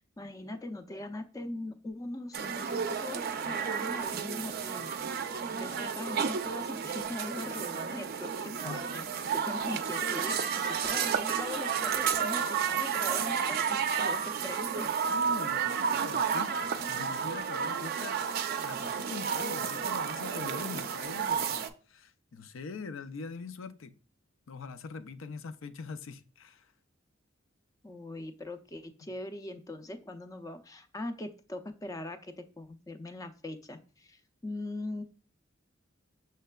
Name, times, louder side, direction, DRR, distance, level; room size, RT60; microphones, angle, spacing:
voice 1, 0.2-5.1 5.5-14.9 27.8-35.0, left 2 dB, 15° left, 0.5 m, -41 dB
sound 1, 2.3-21.7, right 7 dB, 50° right, 0.4 m, -32 dB
voice 2, 15.1-18.3 18.6-23.9 24.5-26.7, left 4 dB, 80° left, 0.5 m, -43 dB
6.5 x 3.2 x 2.2 m
head